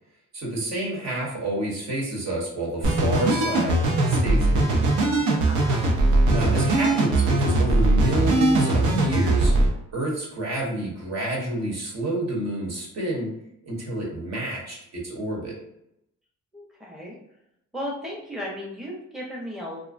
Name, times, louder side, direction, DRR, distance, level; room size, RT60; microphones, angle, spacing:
voice 1, 0.3-3.8 4.1-4.8 6.3-9.5 9.9-13.3 13.6-15.6, right 1 dB, 65° right, -2 dB, 1.0 m, -29 dB
sound 1, 2.8-9.7, right 2 dB, 80° right, 0.6 m, -20 dB
voice 2, 5.4-5.9 16.5-17.2 17.7-19.8, equal, ahead, -3 dB, 0.6 m, -35 dB
2.5 x 2.1 x 2.4 m, 0.80 s
cardioid pair, 90°, 30 cm